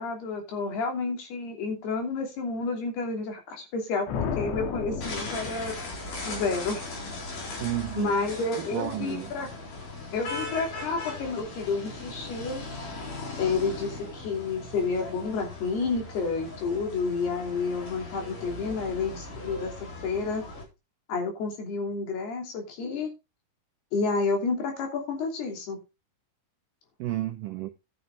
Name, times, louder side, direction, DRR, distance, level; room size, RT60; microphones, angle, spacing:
voice 1, 0.0-5.8 6.3-6.8 8.0-9.5 10.1-12.6 13.4-20.4 21.1-23.1 23.9-25.8, left 4 dB, 70° left, 5.0 m, -30 dB
sound 1, 4.1-6.3, left 6 dB, 90° left, 3.9 m, -33 dB
sound 2, 5.0-20.6, left 2 dB, 50° left, 5.3 m, -39 dB
voice 2, 7.6-8.1 8.6-9.3 27.0-27.7, right 14 dB, 85° right, 1.8 m, -32 dB
12.5 x 7.9 x 3.8 m
omnidirectional pair, 4.9 m